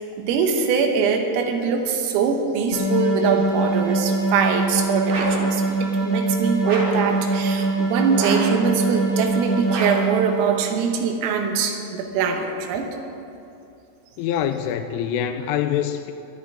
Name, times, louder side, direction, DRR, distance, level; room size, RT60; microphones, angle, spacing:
voice 1, 0.2-12.9, right 5 dB, 80° right, 4 dB, 3.7 m, -23 dB
sound 1, 2.7-10.8, right 2 dB, 45° left, 1.6 m, -23 dB
sound 2, 5.1-5.5 6.6-7.1 8.2-8.6 9.7-10.2, right 3 dB, 55° right, 2.8 m, -28 dB
voice 2, 14.2-16.1, left 9 dB, 85° left, 8 dB, 3.0 m, -25 dB
22.0 x 11.0 x 3.7 m, 2.7 s
omnidirectional pair, 6.0 m